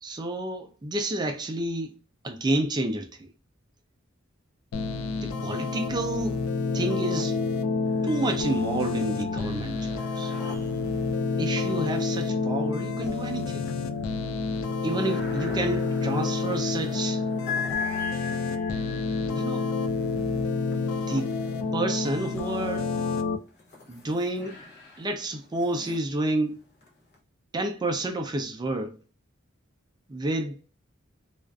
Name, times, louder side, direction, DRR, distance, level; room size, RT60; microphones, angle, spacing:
voice 1, 0.0-2.0 2.2-3.3 5.2-6.4 6.7-7.4 8.0-10.3 11.4-13.7 14.8-17.2 19.3-19.7 20.9-21.3 21.7-22.9 23.9-24.6 25.0-26.6 27.5-29.0 30.1-30.6, right 2 dB, 20° right, 0.4 m, -30 dB
sound 1, 4.7-23.4, left 4 dB, 70° left, 0.4 m, -29 dB
sound 2, 7.8-8.5 8.9-22.0 22.7-27.2, left 5 dB, 50° left, 0.7 m, -41 dB
2.4 x 2.3 x 2.3 m
head